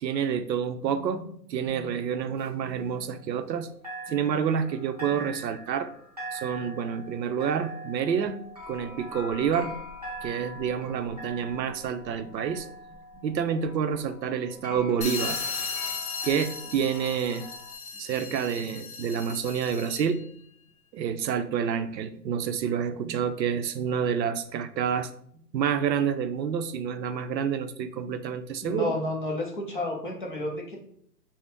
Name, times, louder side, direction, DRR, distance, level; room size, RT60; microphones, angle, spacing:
voice 1, 0.0-3.7 4.1-5.9 6.3-8.4 8.7-9.8 10.2-12.7 12.9-15.4 16.2-17.5 18.0-20.2 20.9-25.1 25.5-28.9, right 7 dB, 85° right, 10 dB, 0.6 m, -28 dB
sound 1, 1.7-3.6 3.8-17.7, equal, 25° right, 0.4 m, -43 dB
sound 2, 15.0-20.2, left 5 dB, 60° left, 0.8 m, -36 dB
voice 2, 28.6-30.8, left 2 dB, 30° left, -1 dB, 0.5 m, -31 dB
3.4 x 2.0 x 3.8 m, 0.65 s
hypercardioid pair, 155°, 50 cm